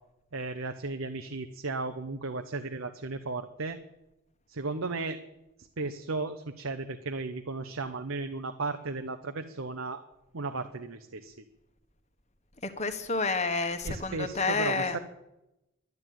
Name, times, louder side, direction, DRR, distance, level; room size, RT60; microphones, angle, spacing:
voice 1, 0.3-3.8 4.5-5.2 5.8-10.0 10.3-11.3 13.8-15.0, right 3 dB, 65° right, 7 dB, 0.8 m, -35 dB
voice 2, 12.6-15.0, left 3 dB, 30° left, 8 dB, 1.2 m, -29 dB
12.0 x 10.5 x 9.3 m, 0.91 s
head